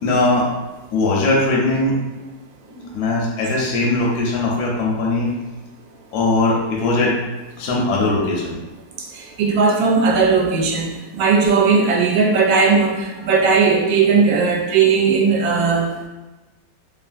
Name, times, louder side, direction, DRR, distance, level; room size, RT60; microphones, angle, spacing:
voice 1, 0.0-0.5 0.9-2.0 2.7-5.3 6.1-7.2 7.6-8.6, left 2 dB, 70° left, -2 dB, 1.0 m, -20 dB
voice 2, 9.4-16.1, right 5 dB, 85° right, 0 dB, 1.3 m, -17 dB
3.1 x 2.4 x 2.5 m, 1.1 s
omnidirectional pair, 2.0 m